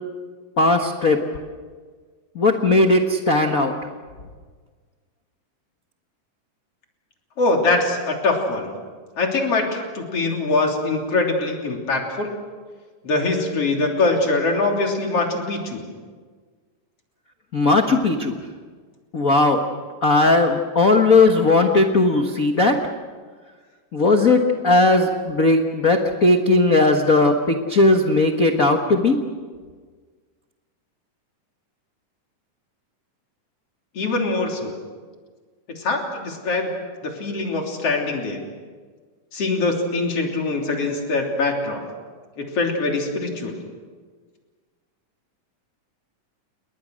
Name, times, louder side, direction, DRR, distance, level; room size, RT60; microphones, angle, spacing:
voice 1, 0.6-1.2 2.3-3.7 17.5-18.3 19.1-19.6 20.0-22.8 23.9-29.2, left 2 dB, 70° left, 4 dB, 0.8 m, -17 dB
voice 2, 7.4-8.7 9.2-12.3 13.0-15.9 34.0-34.7 35.8-36.7 37.0-38.4 39.3-41.9 42.4-43.6, left 3 dB, 45° left, 1 dB, 4.1 m, -23 dB
29.5 x 21.5 x 6.4 m, 1.5 s
omnidirectional pair, 3.9 m